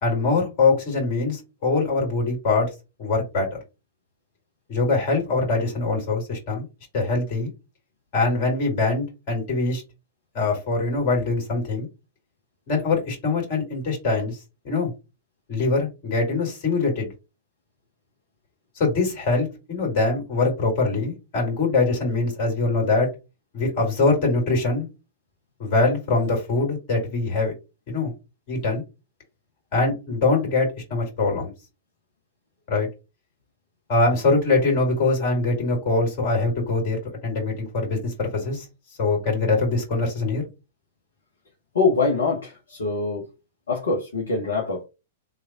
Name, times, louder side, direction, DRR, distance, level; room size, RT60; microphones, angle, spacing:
voice 1, 0.0-2.7 3.0-3.6 4.7-6.7 6.9-7.5 8.1-9.8 10.3-11.9 12.7-14.4 14.6-14.9 15.5-17.1 18.8-23.1 23.5-24.9 25.6-27.5 27.9-28.1 28.5-28.8 29.7-31.5 32.7-32.9 33.9-38.7 39.0-40.5, left 3 dB, 40° left, 1 dB, 2.3 m, -23 dB
voice 2, 41.7-43.3 43.7-44.8, left 4 dB, 65° left, -3 dB, 0.9 m, -24 dB
3.2 x 2.4 x 3.5 m, 0.27 s
figure-of-eight pair, 105°, 0 cm